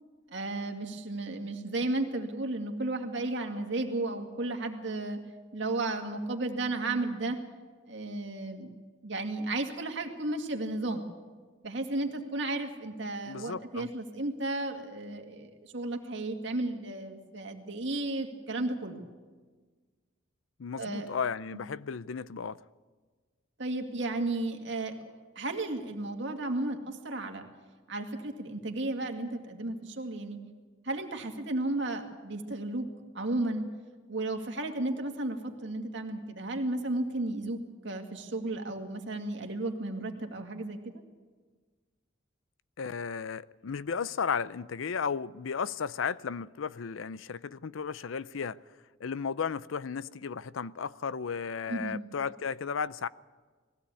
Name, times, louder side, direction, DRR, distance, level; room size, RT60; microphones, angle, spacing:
voice 1, 0.3-5.2 5.5-7.4 7.9-8.7 9.0-11.0 11.6-19.0 20.8-21.1 23.6-27.5 27.9-30.4 30.8-32.9 33.1-33.7 34.1-40.8 51.7-52.0, right 2 dB, 65° right, 2.2 m, -33 dB
voice 2, 13.3-13.9 20.6-22.6 42.8-48.6 49.0-53.1, left 6 dB, 90° left, 0.5 m, -34 dB
20.0 x 16.0 x 8.4 m
head